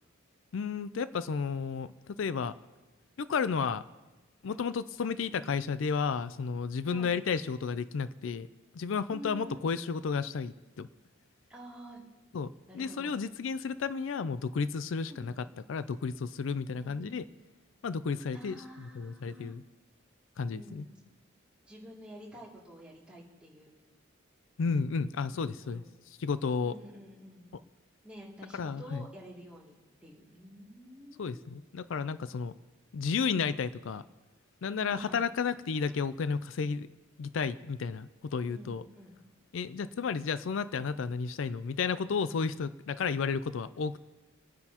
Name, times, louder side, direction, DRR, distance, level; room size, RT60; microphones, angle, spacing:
voice 1, 0.5-2.5 3.2-3.8 4.4-8.5 8.7-10.9 12.3-12.5 12.7-17.2 17.8-18.6 19.0-19.6 20.4-20.9 24.6-25.8 26.2-26.7 28.5-29.1 31.2-32.5 32.9-34.0 34.6-36.9 37.2-38.8 39.5-44.0, left 5 dB, 80° left, 14 dB, 0.4 m, -32 dB
voice 2, 9.1-9.7 11.5-12.0 12.7-13.1 15.1-15.4 16.7-17.2 18.3-19.6 20.5-21.0 21.6-23.7 25.2-25.9 26.6-27.5 28.0-29.8 30.0-31.6 34.8-35.2 38.5-39.2, equal, 5° right, -5 dB, 2.6 m, -49 dB
28.0 x 9.6 x 2.9 m, 1.2 s
head